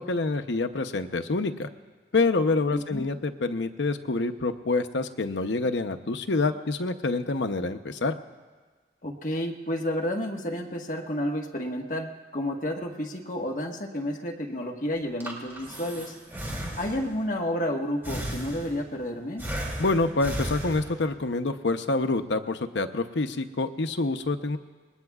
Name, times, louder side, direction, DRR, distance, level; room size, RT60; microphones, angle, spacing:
voice 1, 0.0-1.7 2.1-8.2 19.8-24.6, left 3 dB, 90° left, 8 dB, 0.8 m, -27 dB
voice 2, 2.7-3.0 9.0-16.1 16.8-19.4, left 1 dB, 45° left, 1 dB, 1.5 m, -31 dB
Breathing, 15.0-17.3 18.0-19.0 19.4-21.2, right 1 dB, 15° right, 2.7 m, -35 dB
27.0 x 21.0 x 2.4 m, 1.4 s
head